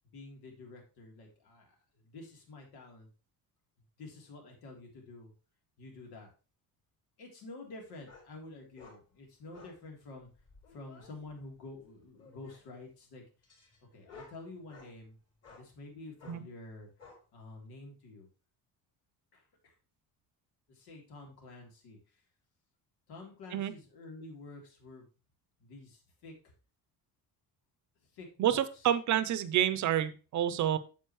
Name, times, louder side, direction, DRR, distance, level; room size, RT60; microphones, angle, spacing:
voice 1, 0.1-3.1 4.0-5.3 5.8-6.3 7.2-10.3 10.7-13.2 13.9-15.2 15.5-16.9 17.3-18.3 19.3-19.7 20.7-22.2 23.1-25.1 25.6-26.5 28.1-28.9, left 2 dB, 80° left, 1 dB, 3.3 m, -49 dB
sound 1, 8.1-8.3 8.8-9.0 9.5-9.8 10.3-11.1 12.1-12.7 13.4-14.9 15.4-15.7 16.2-16.4 17.0-17.2, left 4 dB, 40° left, 4.1 m, -55 dB
voice 2, 28.4-30.8, right 11 dB, 50° right, 13 dB, 0.7 m, -28 dB
9.3 x 7.1 x 3.1 m, 0.33 s
cardioid pair, 165°, 38 cm